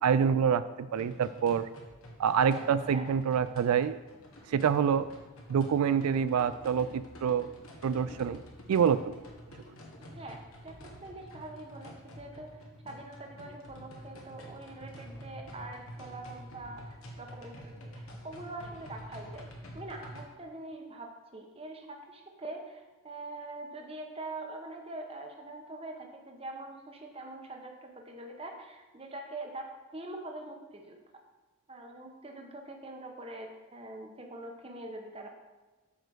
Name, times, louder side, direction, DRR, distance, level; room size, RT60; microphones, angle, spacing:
voice 1, 0.0-1.7 2.2-4.0 4.5-5.1 5.5-7.5 7.8-8.4 8.7-9.2, right 7 dB, 90° right, 13 dB, 0.3 m, -26 dB
sound 1, 0.9-20.2, equal, 75° left, 1.6 m, -48 dB
voice 2, 2.5-3.0 10.1-31.0 31.7-35.3, right 2 dB, 25° right, 3 dB, 1.0 m, -44 dB
8.8 x 5.0 x 6.3 m, 1.2 s
head